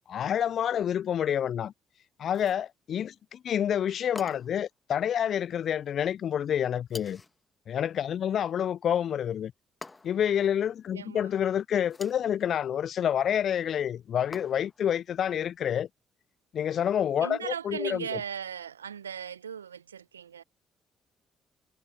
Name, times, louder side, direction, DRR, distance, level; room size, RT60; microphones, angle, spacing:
voice 1, 0.1-1.7 2.2-7.2 7.7-9.5 10.0-15.9 16.5-18.2, left 9 dB, 55° left, 0.4 m, -28 dB
sound 1, 2.3-2.7 4.2-4.7 6.9-7.4 9.8-10.3 11.8-12.3 14.3-14.9, left 3 dB, 25° left, 1.8 m, -46 dB
voice 2, 10.9-11.3 17.2-20.4, right 8 dB, 85° right, 1.0 m, -37 dB
figure-of-eight pair, 45°, 0 cm